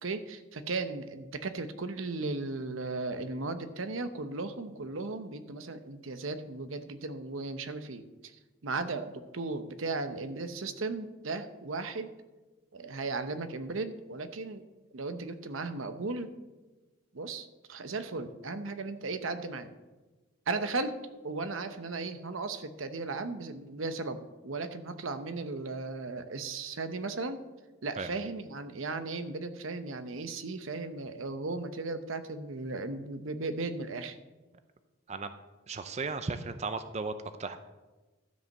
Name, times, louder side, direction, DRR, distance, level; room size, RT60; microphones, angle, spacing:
voice 1, 0.0-8.4 8.6-12.1 12.7-14.7 14.9-16.3 17.1-19.7 20.5-20.9 21.2-27.4 27.8-34.2, right 3 dB, 80° right, 10 dB, 0.9 m, -36 dB
voice 2, 35.7-37.1 37.4-37.6, right 4 dB, 35° right, 9 dB, 0.5 m, -35 dB
12.5 x 5.3 x 7.1 m, 1.2 s
head